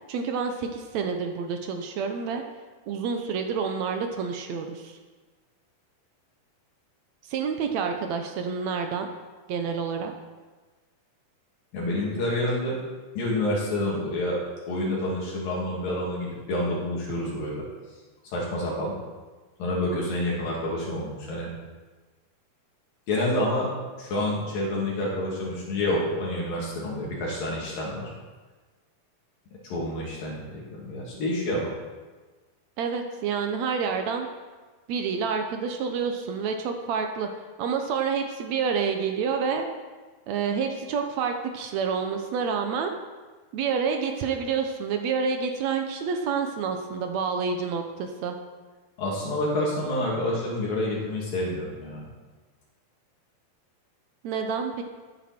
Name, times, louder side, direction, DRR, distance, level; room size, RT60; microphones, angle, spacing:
voice 1, 0.1-2.4 2.9-5.0 7.3-9.1 9.5-10.1 32.8-34.3 34.9-37.3 37.6-39.7 40.3-42.9 43.5-48.4 54.2-54.8, right 6 dB, 75° right, 5 dB, 1.6 m, -28 dB
voice 2, 11.7-12.8 13.2-14.4 14.7-17.6 18.3-19.0 19.6-21.5 23.1-23.7 24.0-28.1 29.6-31.7 49.0-52.1, left 1 dB, 70° left, -5 dB, 4.2 m, -28 dB
13.5 x 9.7 x 4.4 m, 1.3 s
omnidirectional pair, 4.3 m